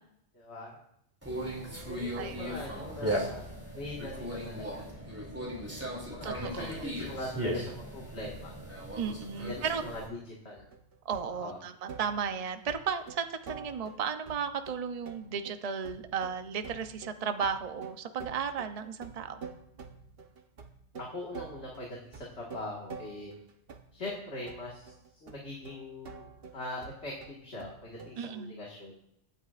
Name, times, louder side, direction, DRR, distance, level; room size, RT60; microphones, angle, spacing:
voice 1, 0.3-0.8 1.6-4.8 5.9-8.6 9.4-9.5 9.8-10.7 11.3-11.6 21.0-23.3 23.9-24.9 25.2-26.3 26.5-29.0, left 1 dB, 75° left, -3 dB, 2.1 m, -42 dB
Conversation, 1.2-10.1, equal, 15° right, 2.7 m, -37 dB
voice 2, 2.1-2.6 6.2-6.8 9.0-9.8 11.0-19.4 28.2-28.6, right 6 dB, 40° right, 8 dB, 0.7 m, -34 dB
sound 1, 10.6-11.5 11.9-28.2, right 5 dB, 60° right, 1.2 m, -48 dB
22.5 x 9.4 x 2.5 m, 0.76 s
omnidirectional pair, 1.1 m